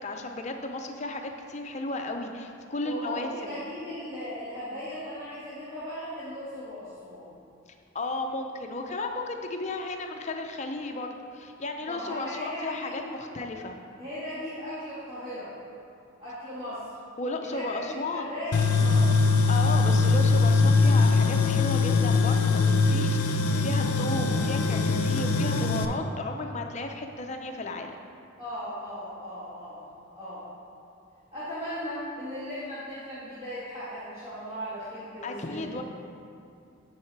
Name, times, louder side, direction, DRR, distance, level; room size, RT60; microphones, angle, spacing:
voice 1, 0.0-3.5 7.9-13.8 17.2-18.3 19.5-27.9 35.2-35.8, left 2 dB, 30° left, 4 dB, 0.5 m, -34 dB
voice 2, 2.8-7.2 11.8-13.1 14.0-15.5 16.2-16.8 17.4-19.1 28.4-29.9 30.1-30.4 31.3-35.8, equal, 25° right, -12 dB, 1.7 m, -37 dB
Tools, 18.5-25.8, left 3 dB, 90° left, 0.5 m, -22 dB
9.4 x 4.8 x 4.6 m, 2.6 s
head